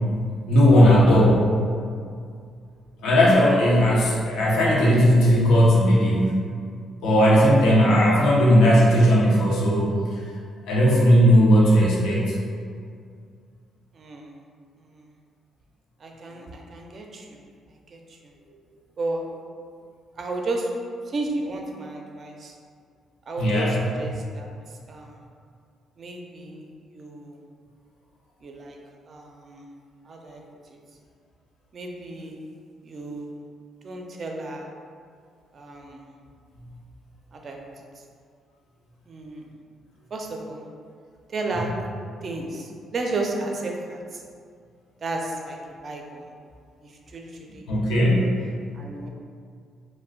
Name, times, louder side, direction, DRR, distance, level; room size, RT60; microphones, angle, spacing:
voice 1, 0.5-1.5 3.0-6.4 7.0-9.9 10.7-12.4 23.4-23.8 47.7-48.3, equal, 80° left, -4 dB, 0.6 m, -17 dB
voice 2, 13.9-14.3 14.8-15.1 16.0-17.4 17.9-18.3 19.0-19.3 20.2-20.7 21.1-22.5 23.3-24.5 24.9-25.2 26.0-27.4 28.4-28.8 29.1-29.7 30.0-30.4 30.7-30.8 31.7-32.4 32.8-33.4 33.8-34.7 35.5-36.1 37.3-37.9 39.1-39.5 40.1-40.6 41.3-41.7 42.2-44.2 45.0-45.6 45.8-46.3 46.8-48.0 48.7-49.1, right 2 dB, 50° right, 1 dB, 0.4 m, -33 dB
2.4 x 2.1 x 3.5 m, 2.2 s
cardioid pair, 90°, 0 cm